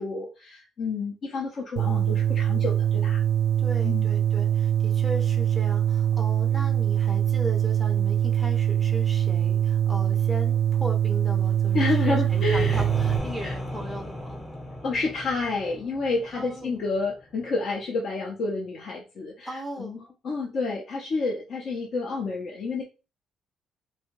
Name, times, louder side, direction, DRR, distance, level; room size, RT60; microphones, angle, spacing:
voice 1, 0.0-3.2 3.8-4.1 11.7-12.8 13.4-13.6 14.8-20.0 20.2-22.8, left 3 dB, 50° left, -1 dB, 0.6 m, -29 dB
sound 1, 1.8-13.2, right 10 dB, 75° right, 0.4 m, -23 dB
voice 2, 3.6-14.4 16.3-16.8 19.4-20.0, equal, ahead, 2 dB, 0.5 m, -37 dB
sound 2, 11.7-17.5, left 1 dB, 25° left, 0.9 m, -36 dB
2.6 x 2.3 x 3.0 m, 0.31 s
cardioid pair, 130°, 0 cm